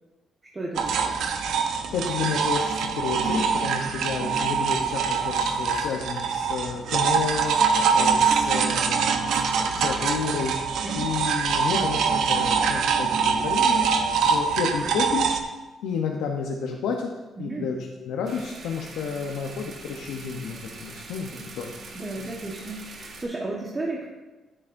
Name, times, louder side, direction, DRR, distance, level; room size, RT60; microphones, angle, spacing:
voice 1, 0.5-1.2 10.8-11.0 17.4-17.7 21.3-21.4 21.9-24.0, right 2 dB, 25° right, -3 dB, 1.3 m, -33 dB
sound 1, 0.8-15.4, right 6 dB, 75° right, 0.8 m, -24 dB
voice 2, 1.9-10.7 11.0-15.3 15.8-17.1 17.4-21.7 22.2-22.3, left 6 dB, 85° left, 0 dB, 0.8 m, -31 dB
sound 2, 18.3-23.2, right 3 dB, 60° right, 1.5 m, -43 dB
10.0 x 9.6 x 2.6 m, 1.1 s
cardioid pair, 90°, 0 cm